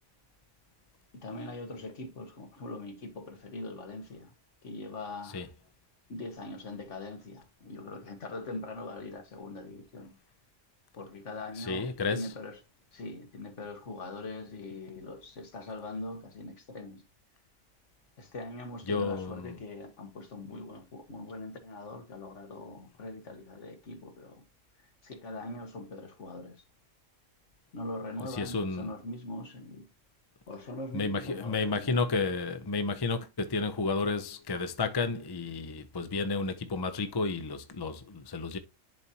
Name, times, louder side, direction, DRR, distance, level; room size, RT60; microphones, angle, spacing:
voice 1, 1.1-4.3 4.6-5.4 6.1-10.2 11.0-12.6 12.9-17.0 18.2-24.4 25.0-26.6 27.7-29.9 30.5-32.1, left 2 dB, 70° left, 1.8 m, -42 dB
voice 2, 11.6-12.3 18.9-19.6 28.3-28.9 30.9-38.6, left 4 dB, 25° left, 0.5 m, -31 dB
10.5 x 4.2 x 2.8 m
omnidirectional pair, 1.3 m